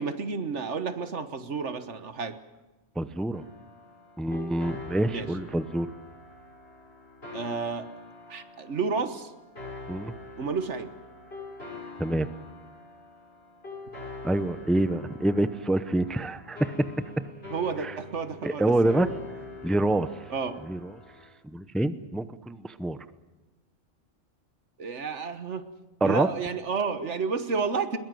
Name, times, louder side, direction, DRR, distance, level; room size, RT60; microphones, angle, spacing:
voice 1, 0.0-2.4 5.1-5.3 7.3-7.9 8.3-9.3 10.4-10.9 17.5-19.0 20.3-20.6 24.8-25.6 26.0-28.0, right 5 dB, 70° right, 10 dB, 1.6 m, -31 dB
voice 2, 3.0-3.4 4.2-5.9 9.9-10.1 12.0-12.3 14.2-16.7 17.8-17.9 18.4-19.1 19.6-20.1 20.7-20.9 21.4-23.0 26.0-26.3, right 1 dB, ahead, 12 dB, 0.6 m, -26 dB
sound 1, 3.3-21.3, left 3 dB, 50° left, 8.0 m, -44 dB
21.5 x 21.0 x 7.8 m, 1.1 s
omnidirectional pair, 1.3 m